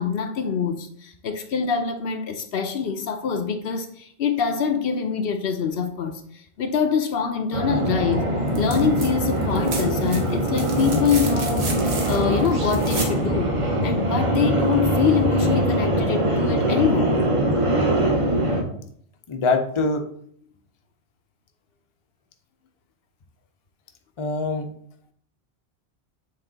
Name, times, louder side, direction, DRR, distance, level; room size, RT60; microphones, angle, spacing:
voice 1, 0.0-8.3 8.6-11.7 12.1-13.6 13.8-17.2, left 6 dB, 70° left, 0.8 m, -24 dB
sound 1, 7.5-18.6, right 1 dB, 30° right, 1.0 m, -22 dB
sound 2, 8.5-9.1 9.4-13.2 14.8-14.9, right 3 dB, 85° right, 1.3 m, -33 dB
voice 2, 19.3-20.1 24.2-24.7, left 3 dB, 35° left, 0.6 m, -23 dB
7.4 x 3.3 x 3.9 m
omnidirectional pair, 1.1 m